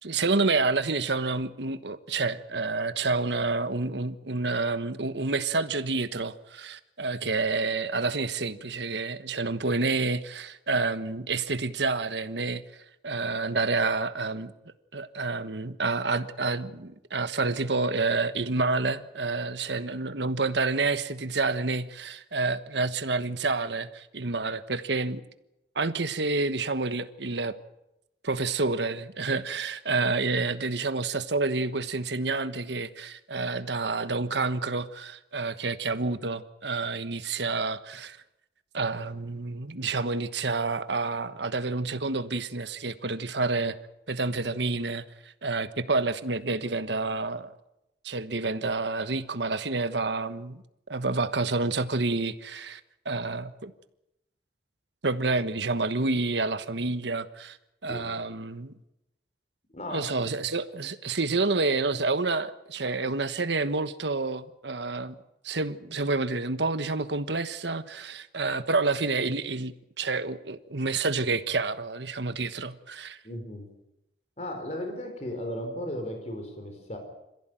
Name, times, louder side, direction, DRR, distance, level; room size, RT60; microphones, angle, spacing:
voice 1, 0.0-12.6 13.0-14.5 14.9-25.2 25.7-27.5 28.2-38.2 38.7-43.8 44.1-47.5 48.0-50.6 50.9-52.8 53.0-53.7 55.0-57.6 57.8-58.7 59.9-65.1 65.4-73.2, right 3 dB, 75° right, 1.3 m, -29 dB
voice 2, 59.7-60.1 73.2-73.7 74.4-77.0, left 1 dB, 35° left, 4.4 m, -35 dB
27.0 x 15.5 x 9.1 m
head